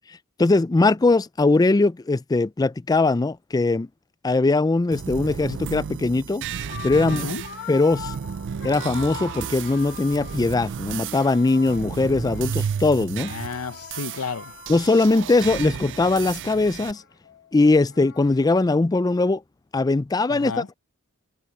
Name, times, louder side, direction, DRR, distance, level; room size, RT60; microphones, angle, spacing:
voice 1, 0.4-3.9 4.2-6.4 6.8-7.3 7.7-8.1 8.6-13.3 14.7-17.0 17.5-19.4 19.7-20.5, left 3 dB, 15° left, 0.3 m, -20 dB
sound 1, 4.9-16.9, right 7 dB, 55° right, 0.4 m, -33 dB
sound 2, 6.1-6.3 6.6-10.6 11.0-12.7 13.1-18.6, left 7 dB, 50° left, 1.4 m, -42 dB
voice 2, 7.1-7.4 13.3-14.5 20.3-20.7, left 5 dB, 75° left, 0.8 m, -32 dB
head